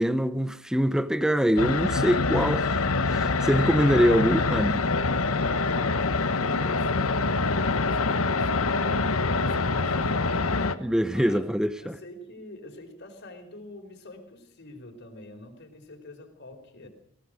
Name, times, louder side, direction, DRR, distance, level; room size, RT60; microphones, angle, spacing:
voice 1, 0.0-2.8 3.1-4.8 10.8-11.9, equal, 5° right, 0.8 m, -24 dB
sound 1, 1.6-10.7, left 3 dB, 80° left, 1.3 m, -25 dB
voice 2, 5.3-10.2 11.1-11.4 11.8-16.9, left 1 dB, 55° left, 4.5 m, -46 dB
22.0 x 19.0 x 6.4 m
head